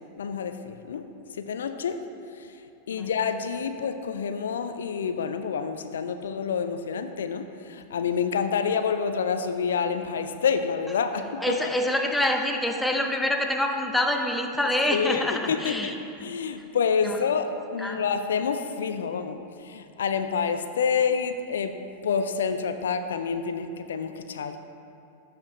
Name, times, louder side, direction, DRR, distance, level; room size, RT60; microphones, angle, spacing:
voice 1, 0.2-1.1 1.3-2.0 2.3-2.6 2.9-11.6 14.9-15.9 16.2-21.7 22.0-24.6, left 6 dB, 65° left, 8 dB, 0.4 m, -28 dB
voice 2, 11.4-15.9 17.0-17.2 17.8-18.0, left 1 dB, 5° left, 3 dB, 0.6 m, -26 dB
14.0 x 4.9 x 3.0 m, 2.6 s
figure-of-eight pair, 90°, 0 cm